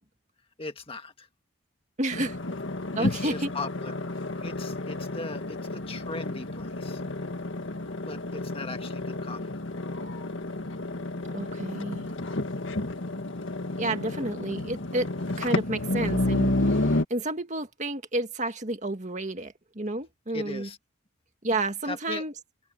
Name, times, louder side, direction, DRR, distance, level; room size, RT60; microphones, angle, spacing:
voice 1, 0.6-1.3 3.0-4.0 4.4-7.0 8.1-9.4 20.3-20.8 21.8-22.2, left 3 dB, 25° left, 1.8 m, -38 dB
voice 2, 2.0-2.4 2.9-3.5 11.3-12.1 13.8-15.1 15.4-20.7 21.4-22.3, right 2 dB, 35° right, 2.1 m, -31 dB
sound 1, 2.1-17.0, left 2 dB, 65° left, 1.8 m, -31 dB
open air
head